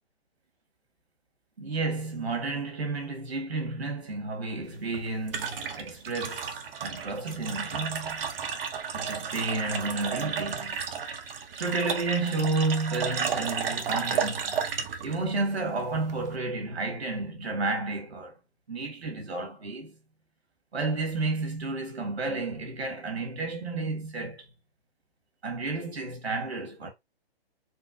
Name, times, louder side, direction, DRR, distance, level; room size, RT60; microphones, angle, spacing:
voice 1, 1.6-8.3 8.9-10.8 11.5-14.5 15.0-18.3 18.7-19.9 20.7-24.4 25.4-26.9, right 3 dB, 85° right, 1.7 m, -31 dB
sound 1, 4.6-16.4, right 6 dB, 65° right, 0.8 m, -33 dB
4.3 x 2.3 x 2.6 m
hypercardioid pair, 140°, 31 cm